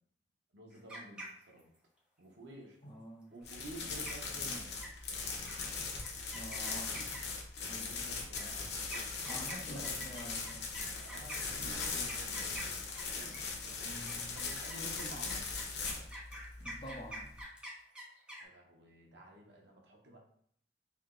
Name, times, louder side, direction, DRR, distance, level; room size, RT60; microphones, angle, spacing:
voice 1, 0.5-1.6 2.2-2.8 3.3-4.8 7.6-8.6 9.7-9.9 11.0-13.4 14.3-15.5 18.4-20.2, right 1 dB, 85° right, 0 dB, 0.9 m, -51 dB
sound 1, 0.7-1.8 3.7-3.8 4.1-4.4 4.8-5.2 5.5-5.6 6.0-7.4 8.3-13.5 13.9-18.4, equal, 5° right, 0.7 m, -47 dB
voice 2, 2.8-3.3 6.3-7.2 7.7-8.3 9.3-10.7 13.8-14.4 16.6-17.3, equal, 30° left, -3 dB, 0.6 m, -48 dB
sound 2, 3.4-17.4, left 4 dB, 70° left, 0.8 m, -40 dB
3.4 x 2.8 x 3.7 m, 0.64 s
head